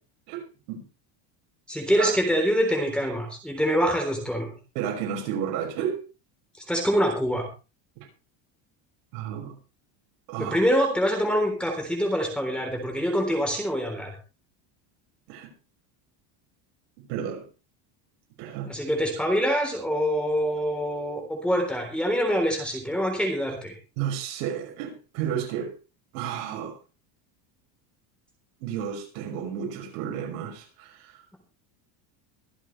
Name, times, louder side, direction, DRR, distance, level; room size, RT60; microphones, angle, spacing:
voice 1, 0.3-0.8 2.0-2.1 4.7-6.0 8.0-8.1 9.1-9.6 10.3-10.6 15.3-15.5 17.1-17.5 18.4-18.7 24.0-25.7 26.1-26.8 28.6-31.2, right 9 dB, 75° right, 6.0 m, -32 dB
voice 2, 1.7-4.5 6.7-7.5 10.4-14.1 18.7-23.7, equal, ahead, 3.6 m, -25 dB
24.0 x 8.1 x 3.3 m
cardioid pair, 170°, 48 cm